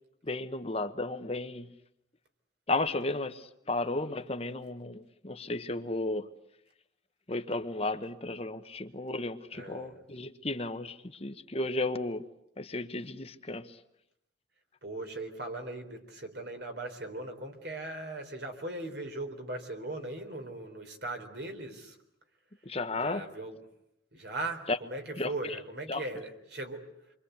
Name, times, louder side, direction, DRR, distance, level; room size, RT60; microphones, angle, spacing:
voice 1, 0.2-1.7 2.7-6.3 7.3-12.2 12.6-13.8 22.6-23.2 24.7-24.8 25.2-25.6 25.9-26.0, left 2 dB, 30° left, 9 dB, 1.0 m, -34 dB
voice 2, 9.5-10.0 14.8-22.0 23.0-23.6 24.1-26.9, right 2 dB, 60° right, 5 dB, 4.0 m, -39 dB
28.5 x 24.0 x 8.2 m, 0.79 s
head